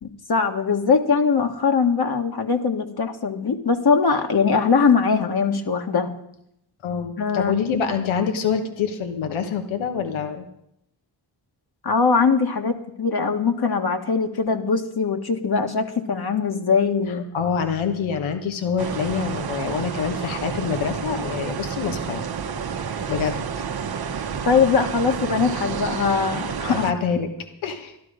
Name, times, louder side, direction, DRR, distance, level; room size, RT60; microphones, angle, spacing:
voice 1, 0.0-6.2 7.2-7.5 11.8-17.2 24.4-26.9, left 5 dB, 55° left, 4 dB, 1.6 m, -21 dB
voice 2, 6.8-10.4 17.1-22.2 23.1-23.7 26.7-27.3 27.6-27.9, left 6 dB, 85° left, 6 dB, 1.2 m, -26 dB
sound 1, 18.8-26.9, right 6 dB, 55° right, 1.0 m, -30 dB
12.5 x 12.0 x 5.1 m, 0.78 s
supercardioid pair, 45°, 46 cm